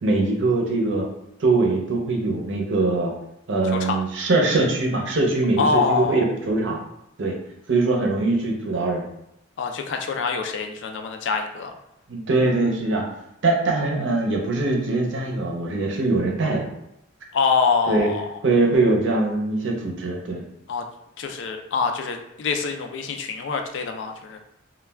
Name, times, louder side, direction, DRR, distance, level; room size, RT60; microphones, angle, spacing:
voice 1, 0.0-1.1 1.4-3.1 3.5-6.8 7.2-7.4 7.7-9.0 12.1-13.0 13.4-16.7 17.9-18.1 18.4-20.4, right 2 dB, 75° right, 1 dB, 0.6 m, -22 dB
voice 2, 5.6-6.3 9.6-11.7 17.3-18.4 20.7-20.8 21.2-24.4, left 5 dB, 70° left, 5 dB, 0.4 m, -25 dB
2.2 x 2.2 x 3.3 m, 0.83 s
head